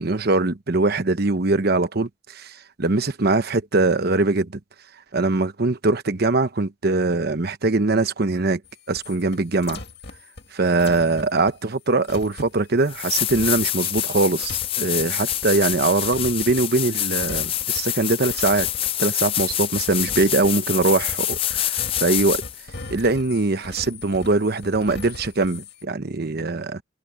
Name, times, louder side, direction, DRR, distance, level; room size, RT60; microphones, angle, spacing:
voice 1, 0.0-4.5 5.1-8.6 8.9-9.8 10.5-18.7 19.0-22.4 22.9-26.8, right 3 dB, 55° right, 1.0 m, -22 dB
sound 1, 8.6-16.9 17.2-18.0 18.3-25.8, left 3 dB, 60° left, 2.1 m, -40 dB
sound 2, 12.4-12.5 12.9-22.6 25.4-25.5, left 12 dB, 30° left, 0.3 m, -26 dB
head